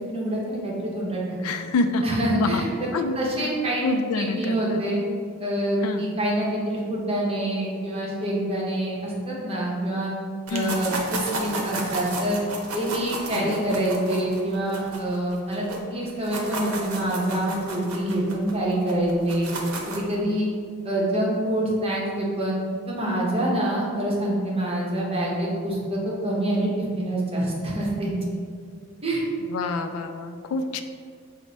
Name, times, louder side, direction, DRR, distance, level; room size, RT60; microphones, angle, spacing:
voice 1, 0.1-1.4 2.0-5.0 5.4-10.1 10.5-12.4 12.7-15.6 15.9-19.5 19.9-20.5 20.8-22.6 22.9-26.7 27.0-28.1 29.0-29.2, right 1 dB, 25° right, -4 dB, 0.9 m, -26 dB
voice 2, 1.4-2.6 2.9-3.2 3.8-4.8 5.8-6.1 10.5-10.8 13.3-13.6 29.5-30.8, left 3 dB, 80° left, 9 dB, 0.3 m, -27 dB
sound 1, 10.5-15.8 16.1-20.1, right 2 dB, 80° right, 0.7 m, -33 dB
5.8 x 2.1 x 4.0 m, 2.1 s
head